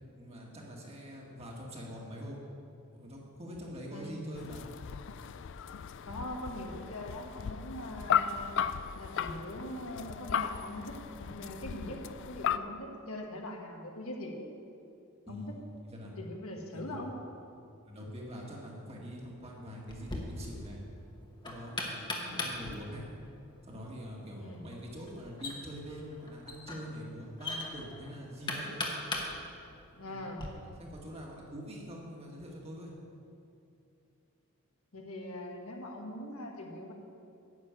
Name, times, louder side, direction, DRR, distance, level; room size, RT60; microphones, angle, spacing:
voice 1, 0.1-2.4 3.0-4.7 15.3-16.1 16.7-17.0 17.9-20.8 21.4-23.1 23.6-28.9 30.1-30.3 30.6-32.9, equal, 30° right, -3 dB, 1.9 m, -44 dB
sound 1, 4.3-12.6, left 8 dB, 55° left, 0.4 m, -36 dB
voice 2, 6.1-8.6 9.0-12.0 12.3-14.4 15.3-15.4 16.2-17.1 22.2-22.5 24.4-24.6 30.0-30.5 34.9-36.9, left 1 dB, 75° left, 1 dB, 1.6 m, -42 dB
Knock, 19.9-30.5, left 2 dB, 20° left, 1.3 m, -41 dB
9.7 x 6.7 x 8.9 m, 2.5 s
head